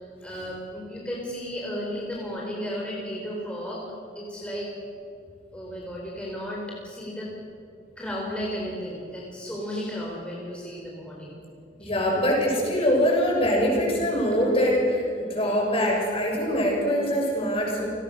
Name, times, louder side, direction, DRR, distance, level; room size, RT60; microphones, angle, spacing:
voice 1, 0.0-3.9 4.1-4.7 5.5-7.4 8.0-11.3 11.8-11.9, equal, 5° left, -4 dB, 4.1 m, -34 dB
voice 2, 11.8-17.9, equal, 35° left, -1 dB, 6.8 m, -23 dB
30.0 x 19.0 x 6.5 m, 2.5 s
head